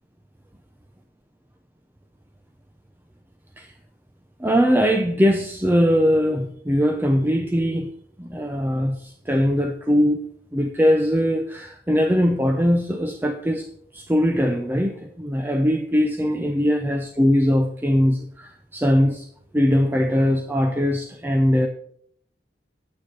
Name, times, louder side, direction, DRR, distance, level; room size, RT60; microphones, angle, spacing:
voice 1, 4.4-7.9 8.2-13.7 13.9-19.3 19.5-21.7, equal, 10° right, 4 dB, 0.6 m, -21 dB
9.2 x 8.5 x 4.6 m, 0.63 s
head